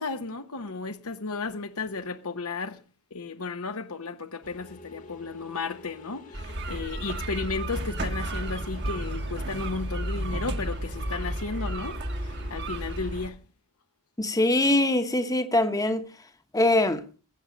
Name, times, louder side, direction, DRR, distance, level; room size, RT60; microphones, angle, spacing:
voice 1, 0.0-2.8 3.1-13.4, left 4 dB, 70° left, 1.0 m, -34 dB
sound 1, 4.4-13.2, left 1 dB, 35° left, 1.4 m, -43 dB
sound 2, 6.3-13.3, right 1 dB, 50° right, 1.5 m, -33 dB
voice 2, 14.2-16.1 16.5-17.0, left 1 dB, 15° left, 1.1 m, -23 dB
20.5 x 8.0 x 5.1 m
head